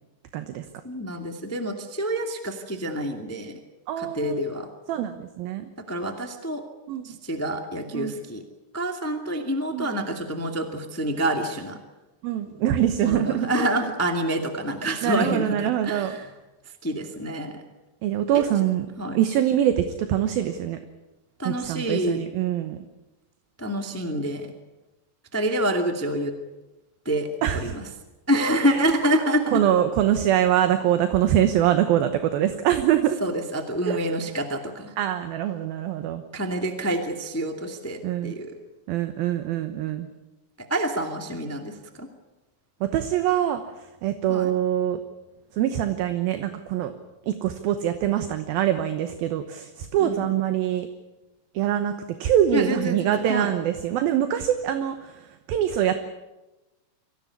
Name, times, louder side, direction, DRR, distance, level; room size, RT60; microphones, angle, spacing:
voice 1, 0.3-0.6 3.9-4.4 4.9-5.7 6.9-7.1 7.9-8.2 9.7-9.9 12.2-13.5 15.0-16.2 18.0-18.9 19.1-20.8 21.4-22.8 27.4-27.7 28.6-28.9 29.5-33.2 33.9-34.0 35.0-36.2 38.0-38.3 38.9-40.1 42.8-43.6 44.0-45.0 45.6-46.9 47.3-50.9 51.5-51.9 52.2-56.0, right 11 dB, 75° right, 9 dB, 2.8 m, -24 dB
voice 2, 0.8-3.6 4.0-4.7 5.9-6.6 7.0-8.4 8.7-11.8 13.0-16.3 16.8-17.6 18.3-18.5 19.0-19.2 21.4-22.2 23.6-24.5 25.3-26.3 27.0-27.9 28.3-29.6 33.2-34.9 36.3-38.6 40.6-42.1 44.3-44.5 50.0-50.2 52.5-53.5, right 1 dB, 10° left, 4 dB, 1.0 m, -27 dB
24.0 x 16.5 x 9.7 m, 1.0 s
omnidirectional pair, 4.6 m